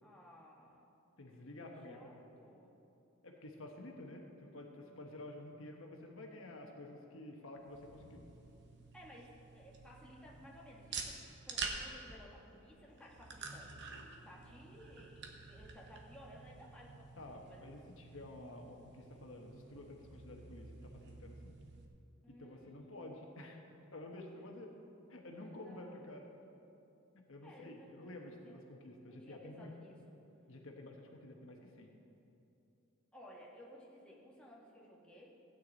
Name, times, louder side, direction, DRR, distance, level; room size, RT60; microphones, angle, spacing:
voice 1, 0.0-0.9 1.9-2.7 8.9-13.7 14.2-17.7 22.2-23.4 24.4-24.5 25.4-26.7 27.4-28.6 29.0-30.1 33.1-35.3, equal, 5° left, -5 dB, 1.7 m, -57 dB
voice 2, 1.2-2.0 3.2-8.2 17.2-21.5 22.3-23.6 23.9-24.7 25.1-26.3 27.1-29.7 30.5-31.9, left 1 dB, 70° left, 2 dB, 1.2 m, -51 dB
sound 1, 7.6-21.8, right 4 dB, 55° right, 1.1 m, -49 dB
16.0 x 9.3 x 4.0 m, 2.8 s
head